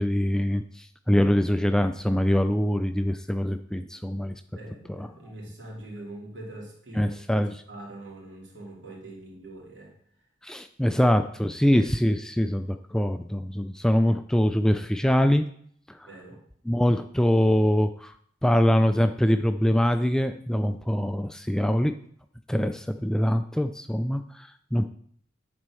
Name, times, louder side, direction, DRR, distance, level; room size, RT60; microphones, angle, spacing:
voice 1, 0.0-4.3 4.9-5.1 7.0-7.6 10.4-15.4 15.9-16.1 16.7-18.1 18.4-21.9 22.5-24.9, equal, 5° left, 9 dB, 0.3 m, -24 dB
voice 2, 4.5-9.9 10.9-11.0 16.0-16.4, right 1 dB, 70° right, -3 dB, 3.1 m, -43 dB
9.4 x 4.3 x 6.1 m, 0.63 s
head